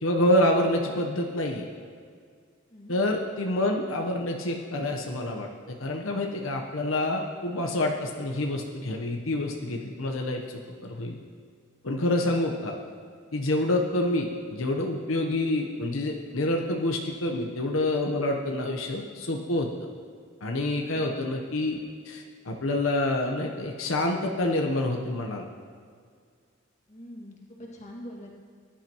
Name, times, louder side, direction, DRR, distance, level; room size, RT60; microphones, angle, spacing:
voice 1, 0.0-1.7 2.9-11.2 11.8-12.8 13.3-19.7 20.4-21.8 22.1-25.5, left 1 dB, 85° left, 1 dB, 1.0 m, -27 dB
voice 2, 26.9-28.4, equal, 35° left, -3 dB, 2.0 m, -44 dB
18.5 x 11.5 x 3.0 m, 2.1 s
head